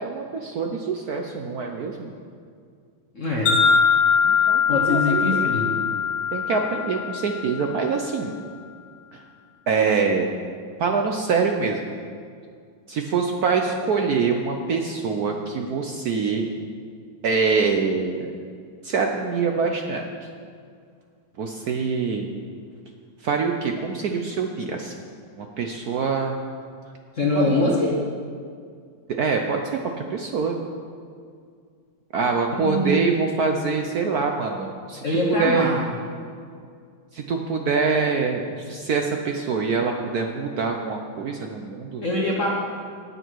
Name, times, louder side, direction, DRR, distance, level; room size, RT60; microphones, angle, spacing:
voice 1, 0.0-2.1 4.2-5.5 6.3-8.4 9.1-9.2 9.7-10.3 10.8-11.9 12.9-16.5 17.2-18.3 18.8-20.1 21.4-22.3 23.2-24.9 25.4-26.4 27.3-27.8 29.1-29.6 30.1-30.6 32.1-35.0 35.4-35.7 37.1-42.0, right 5 dB, 70° right, 3 dB, 0.9 m, -25 dB
voice 2, 3.1-3.6 4.7-5.7 27.1-27.9 32.6-33.1 35.0-36.0 42.0-42.5, left 2 dB, 45° left, -3 dB, 1.3 m, -23 dB
Wind chime, 3.5-7.7, left 6 dB, 60° left, 2.7 m, -21 dB
18.0 x 6.6 x 4.6 m, 2.2 s
omnidirectional pair, 2.4 m